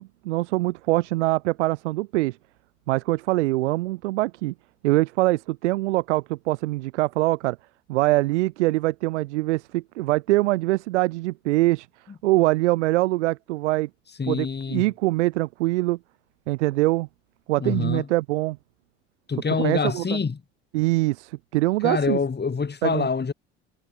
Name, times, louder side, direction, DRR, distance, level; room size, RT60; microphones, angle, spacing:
voice 1, 0.0-2.4 2.9-4.5 4.8-7.6 7.9-11.9 12.2-13.9 14.3-16.0 16.5-17.1 17.5-18.6 19.6-20.2 20.7-22.2 22.8-23.1, right 19 dB, 80° right, 4.2 m, -23 dB
voice 2, 14.2-14.8 17.6-18.1 19.3-20.4 21.8-23.3, left 5 dB, 30° left, 7.3 m, -25 dB
hypercardioid pair, 65°, 35 cm